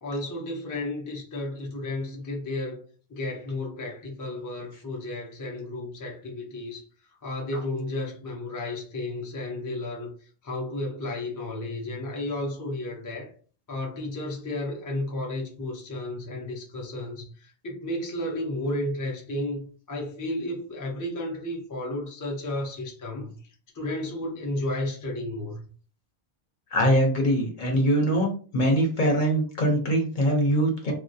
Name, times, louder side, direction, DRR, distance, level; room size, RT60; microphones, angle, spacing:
voice 1, 0.0-2.8 3.1-6.8 7.2-10.1 10.4-13.3 13.7-23.4 23.7-25.7, left 1 dB, 30° left, 0.4 m, -33 dB
voice 2, 26.7-30.9, equal, 55° left, 0.8 m, -23 dB
2.3 x 2.1 x 2.6 m
omnidirectional pair, 1.1 m